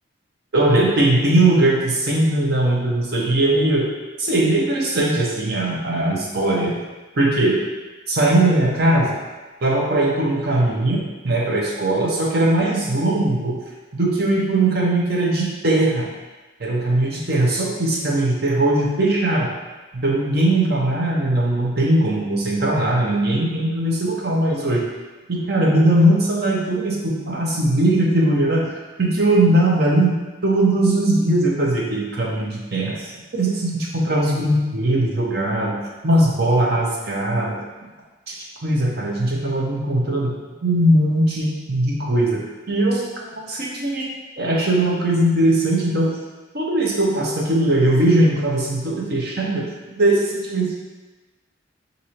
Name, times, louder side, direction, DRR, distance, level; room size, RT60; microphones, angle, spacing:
voice 1, 0.5-3.9 4.2-6.8 7.1-7.6 8.1-9.2 9.6-13.6 13.9-16.1 16.6-19.5 20.0-24.8 25.3-33.1 33.4-37.6 38.3-38.4 38.6-40.3 40.6-43.1 43.5-44.1 44.4-46.2 46.5-50.7, right 1 dB, 55° right, -2 dB, 0.8 m, -19 dB
6.3 x 2.7 x 2.8 m, 1.2 s
head